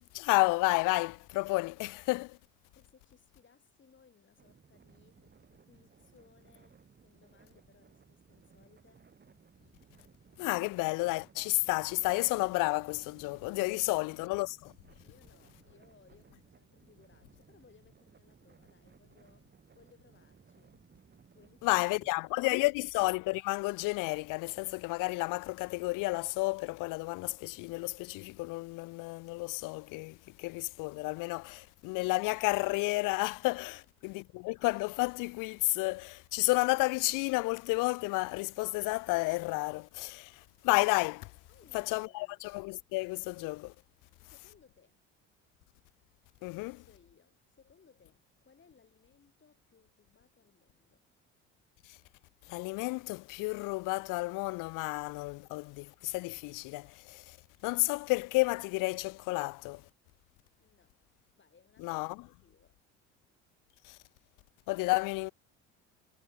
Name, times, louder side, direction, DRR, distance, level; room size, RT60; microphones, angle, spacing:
voice 1, 0.1-2.4 10.4-14.7 21.6-41.3 41.7-43.7 46.4-46.8 52.5-57.4 57.6-59.8 61.8-62.2 63.8-64.0 64.7-65.3, left 24 dB, 60° left, 0.6 m, -31 dB
voice 2, 2.7-5.3 5.7-9.1 15.0-20.8 21.3-22.9 31.4-31.8 33.7-33.9 41.5-42.5 44.2-45.0 46.6-51.0 60.6-61.0 61.4-62.8, left 6 dB, 30° left, 5.0 m, -64 dB
sound 1, 4.4-22.1, right 5 dB, 30° right, 3.2 m, -61 dB
hypercardioid pair, 65°, 36 cm